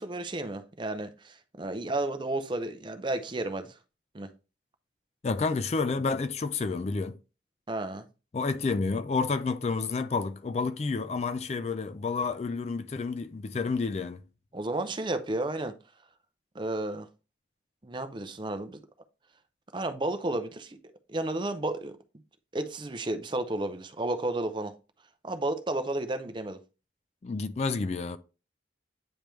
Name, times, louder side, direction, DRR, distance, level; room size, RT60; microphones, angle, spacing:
voice 1, 0.0-3.8 4.1-4.3 7.7-8.1 14.5-15.8 16.5-17.1 17.8-18.8 19.7-20.8 21.1-22.0 22.5-24.7 25.2-26.6, right 2 dB, 25° right, 0.5 m, -32 dB
voice 2, 5.2-7.2 8.3-14.2 27.2-28.2, left 4 dB, 35° left, 0.3 m, -30 dB
8.8 x 3.4 x 3.1 m
head